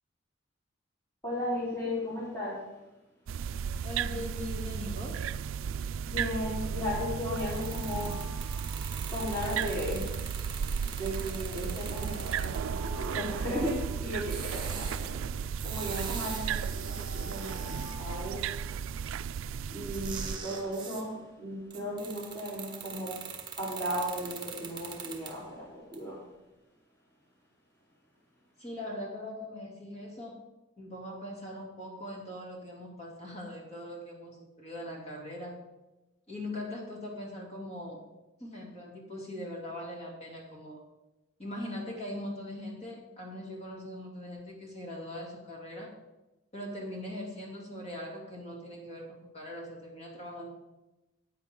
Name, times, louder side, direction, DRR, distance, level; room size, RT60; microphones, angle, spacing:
voice 1, 1.2-2.7 6.0-8.4 9.1-10.2 10.8-15.1 15.6-18.5 19.7-23.3 23.6-26.2, equal, 15° left, -9 dB, 4.0 m, -35 dB
sound 1, 3.3-20.4, right 7 dB, 75° right, 0.3 m, -35 dB
voice 2, 3.8-5.2 28.6-30.4 30.8-35.6 36.3-38.0 38.4-40.8 41.4-45.9 46.5-50.5, left 1 dB, 30° left, -1 dB, 2.7 m, -41 dB
Alarm, 4.0-4.4 6.1-9.9 11.0-14.8 15.9-19.1, left 2 dB, 75° left, 2.1 m, -50 dB
sound 2, 7.3-12.7 14.2-18.0 19.9-21.1 21.7-25.5 25.9-26.0, right 6 dB, 20° right, 1.3 m, -43 dB
14.5 x 9.1 x 3.8 m, 1.0 s
head